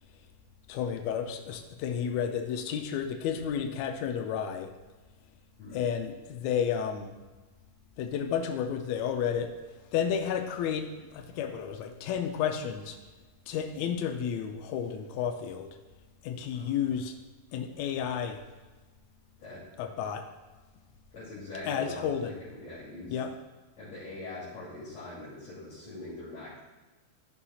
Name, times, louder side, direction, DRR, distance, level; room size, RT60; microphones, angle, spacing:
voice 1, 0.7-4.7 5.7-7.1 8.0-9.5 9.9-10.9 11.1-13.0 13.5-15.7 16.2-17.1 17.5-18.4 19.8-20.3 21.7-22.4 23.1-23.3, left 8 dB, 85° left, 5 dB, 1.5 m, -31 dB
voice 2, 16.5-16.9 19.4-19.6 21.1-23.2 23.8-26.6, left 2 dB, 55° left, -10 dB, 3.8 m, -43 dB
13.0 x 6.9 x 2.4 m, 1.2 s
omnidirectional pair, 3.9 m